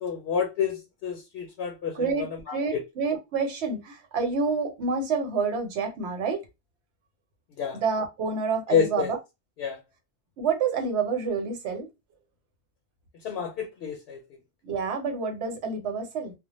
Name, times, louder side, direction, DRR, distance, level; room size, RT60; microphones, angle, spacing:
voice 1, 0.0-2.1 2.5-2.8 7.6-7.8 8.7-9.1 9.6-9.8 13.2-14.2, left 7 dB, 75° left, 0.8 m, -28 dB
voice 2, 1.9-6.4 7.7-9.2 10.4-11.9 14.6-16.3, right 5 dB, 85° right, 1.0 m, -28 dB
2.1 x 2.0 x 2.9 m
omnidirectional pair, 1.1 m